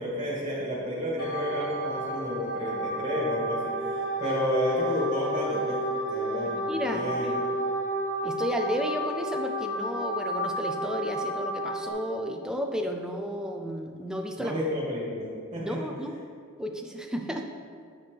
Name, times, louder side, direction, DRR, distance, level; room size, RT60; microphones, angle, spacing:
voice 1, 0.0-3.7 4.2-5.8 6.1-7.3 14.4-15.8, equal, 25° right, -7 dB, 1.8 m, -31 dB
sound 1, 1.2-11.9, equal, 80° left, 1.2 m, -31 dB
voice 2, 6.5-7.4 8.2-14.5 15.6-16.1 16.6-17.5, equal, 5° right, 3 dB, 0.5 m, -33 dB
8.1 x 5.6 x 3.4 m, 2.2 s
head